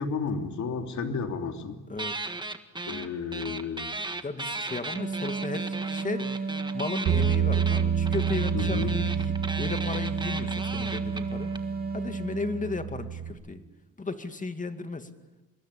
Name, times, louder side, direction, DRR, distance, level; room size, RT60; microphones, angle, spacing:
voice 1, 0.0-1.8 2.9-3.9 8.5-8.9, left 5 dB, 70° left, 4 dB, 3.2 m, -32 dB
sound 1, 2.0-3.1 3.3-11.6, right 2 dB, 15° right, 1.7 m, -36 dB
voice 2, 4.2-11.5 11.9-13.6 14.0-15.1, left 3 dB, 25° left, 8 dB, 2.3 m, -35 dB
sound 2, 4.9-13.1, right 4 dB, 30° right, 2.8 m, -33 dB
Bass guitar, 7.1-13.3, right 8 dB, 85° right, 6.9 m, -29 dB
27.0 x 21.0 x 8.5 m, 1.1 s
cardioid pair, 90°, 30 cm